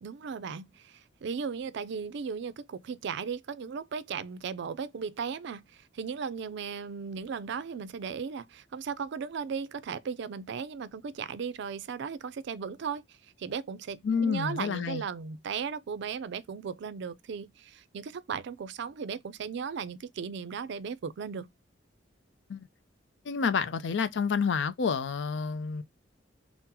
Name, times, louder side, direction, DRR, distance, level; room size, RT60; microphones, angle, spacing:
voice 1, 0.0-5.6 5.9-13.0 13.4-21.5, right 6 dB, 65° right, 0.4 m, -36 dB
voice 2, 14.0-15.0 22.5-22.7 23.3-25.8, left 6 dB, 70° left, 0.4 m, -29 dB
3.7 x 2.0 x 2.7 m
head